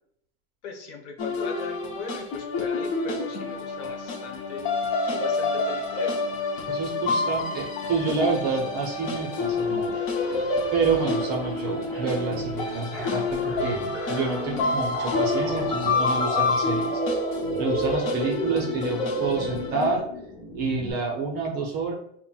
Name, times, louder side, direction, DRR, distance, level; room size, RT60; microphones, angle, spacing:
voice 1, 0.6-4.7 5.0-6.2 7.3-7.4, left 4 dB, 75° left, 2 dB, 1.0 m, -39 dB
sound 1, 1.2-19.9, left 3 dB, 45° left, 0.7 m, -28 dB
voice 2, 6.6-10.0 10.7-13.8 14.1-17.0 17.6-20.1 20.5-21.9, right 4 dB, 25° right, 0 dB, 0.5 m, -28 dB
sound 2, 9.3-20.9, equal, 5° left, 1.1 m, -34 dB
5.6 x 2.1 x 2.3 m, 0.73 s
supercardioid pair, 160°, 35 cm